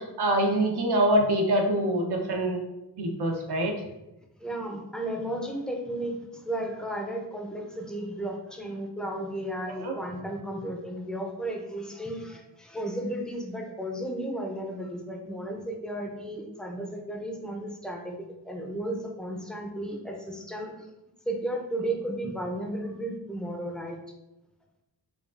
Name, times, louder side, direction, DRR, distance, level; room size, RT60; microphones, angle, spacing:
voice 1, 0.0-2.6 3.0-3.7 9.8-9.9, right 1 dB, 70° right, 2 dB, 0.8 m, -25 dB
voice 2, 4.4-20.9 21.3-24.0, right 1 dB, ahead, 1 dB, 0.6 m, -34 dB
4.9 x 2.3 x 2.5 m, 0.94 s
wide cardioid pair, 90°, 41 cm